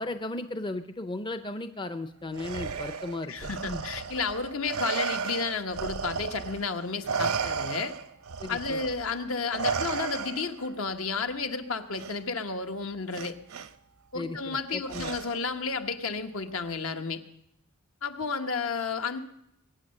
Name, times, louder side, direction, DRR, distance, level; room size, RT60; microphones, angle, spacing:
voice 1, 0.0-3.8 8.4-8.8 14.1-15.1, left 2 dB, 20° left, 9 dB, 0.6 m, -36 dB
Respiratory sounds, 2.3-6.7 7.0-10.7 11.9-12.1 13.1-13.7 14.9-15.5, right 5 dB, 75° right, 0.7 m, -33 dB
voice 2, 3.3-7.9 8.5-13.4 14.1-17.2 18.0-19.2, left 4 dB, 70° left, 7 dB, 1.2 m, -32 dB
22.0 x 8.9 x 6.5 m, 0.79 s
head